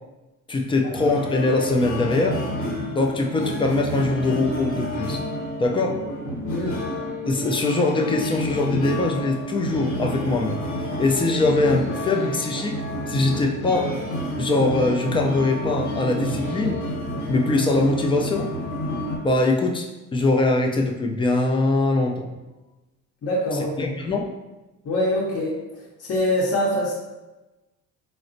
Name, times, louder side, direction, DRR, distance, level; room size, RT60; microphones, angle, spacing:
voice 1, 0.5-2.4 2.9-5.2 5.6-6.0 7.3-10.6 11.0-13.9 14.4-16.8 17.3-18.5 19.2-22.3 23.5-24.3, left 2 dB, 15° left, 2 dB, 0.3 m, -22 dB
sound 1, 0.9-19.2, equal, 85° left, 0.9 m, -29 dB
voice 2, 6.5-6.8 23.2-23.9 24.8-25.6 26.0-26.9, left 1 dB, 40° left, -5 dB, 0.8 m, -24 dB
4.0 x 2.1 x 2.6 m, 1.1 s
supercardioid pair, 80°, 37 cm